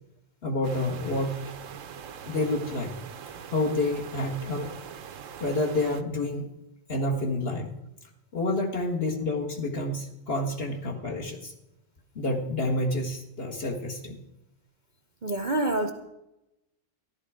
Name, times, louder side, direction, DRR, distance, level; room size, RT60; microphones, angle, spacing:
voice 1, 0.4-1.4 2.2-3.0 3.5-4.7 5.4-6.5 6.9-7.7 8.3-11.5 12.2-14.2 15.6-15.7, left 2 dB, 45° left, 1 dB, 1.9 m, -29 dB
sound 1, 0.6-6.0, right 8 dB, 70° right, 1.1 m, -42 dB
voice 2, 15.2-15.9, right 2 dB, 40° right, 4 dB, 0.8 m, -26 dB
14.0 x 11.5 x 4.9 m, 0.92 s
omnidirectional pair, 1.4 m